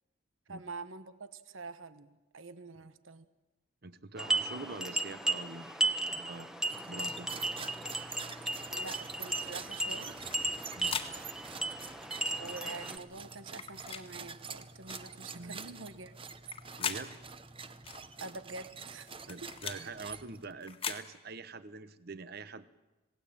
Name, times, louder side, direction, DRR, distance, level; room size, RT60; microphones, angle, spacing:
voice 1, 0.5-3.2 8.7-10.4 12.4-16.1 18.2-19.1 19.4-19.5, right 3 dB, 80° right, 13 dB, 1.2 m, -46 dB
voice 2, 3.8-6.5 6.9-7.3 10.7-11.0 15.3-15.6 16.8-17.1 19.3-22.7, right 3 dB, 50° right, 14 dB, 1.1 m, -45 dB
sound 1, 4.2-13.0, right 2 dB, 5° right, 1.2 m, -35 dB
sound 2, 6.7-20.6, right 5 dB, 25° right, 1.0 m, -46 dB
sound 3, 8.8-9.0 10.3-11.1 12.2-12.4 13.5-14.1 14.9-15.1 16.3-17.0 17.9-18.0 19.0-19.8 20.6-21.0, left 6 dB, 30° left, 1.7 m, -40 dB
27.0 x 18.5 x 8.8 m, 1.1 s
head